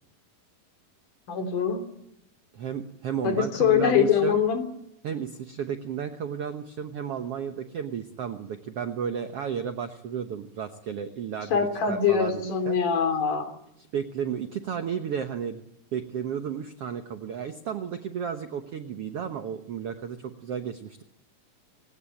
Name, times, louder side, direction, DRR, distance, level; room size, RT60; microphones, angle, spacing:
voice 1, 1.3-1.8 3.2-4.6 11.5-13.5, left 7 dB, 65° left, 7 dB, 4.4 m, -23 dB
voice 2, 2.5-4.4 5.0-12.8 13.9-15.6 15.9-21.0, right 8 dB, 70° right, 7 dB, 1.5 m, -33 dB
26.0 x 17.0 x 9.1 m, 0.82 s
omnidirectional pair, 4.1 m